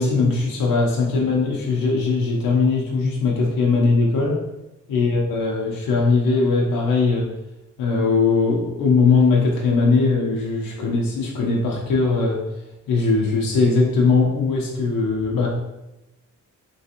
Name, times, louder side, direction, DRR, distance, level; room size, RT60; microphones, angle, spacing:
voice 1, 0.0-4.4 4.9-7.3 7.8-12.4 12.9-15.5, left 4 dB, 85° left, -2 dB, 0.7 m, -20 dB
3.3 x 3.1 x 2.8 m, 0.96 s
wide cardioid pair, 145°, 33 cm